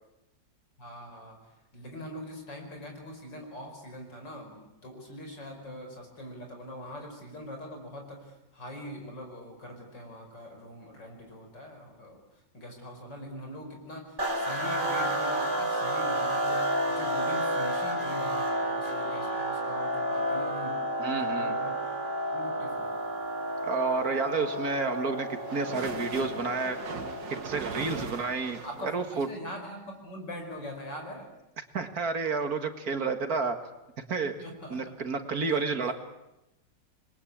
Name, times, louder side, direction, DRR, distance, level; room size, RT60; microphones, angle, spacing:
voice 1, 0.8-20.8 21.1-22.0 22.3-22.9 27.9-28.1 28.6-31.3 34.4-34.8 35.5-35.9, equal, 75° left, 3 dB, 6.0 m, -43 dB
sound 1, 14.2-27.6, equal, 25° right, 3.9 m, -31 dB
voice 2, 21.0-21.6 23.6-26.8 27.4-28.6 28.9-29.3 31.7-33.6 34.1-34.3 34.7-35.9, right 4 dB, 55° right, 7 dB, 2.2 m, -30 dB
sound 2, 24.2-29.3, right 5 dB, 80° right, 2.4 m, -40 dB
27.5 x 21.5 x 8.6 m, 0.94 s
omnidirectional pair, 2.0 m